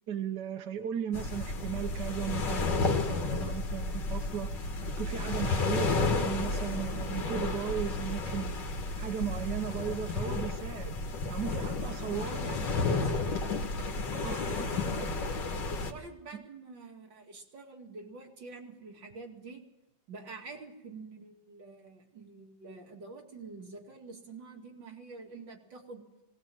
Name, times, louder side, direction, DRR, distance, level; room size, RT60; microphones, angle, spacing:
voice 1, 0.1-4.5 5.0-8.7 9.0-11.0 11.3-13.5 14.2-14.7, right 9 dB, 70° right, 4 dB, 1.7 m, -37 dB
sound 1, 1.1-15.9, left 3 dB, 75° left, 2.2 m, -32 dB
voice 2, 12.1-13.1 14.0-15.3 15.9-19.6 20.1-26.0, right 3 dB, 90° right, 1 dB, 3.1 m, -47 dB
19.0 x 18.0 x 7.7 m, 0.88 s
omnidirectional pair, 1.9 m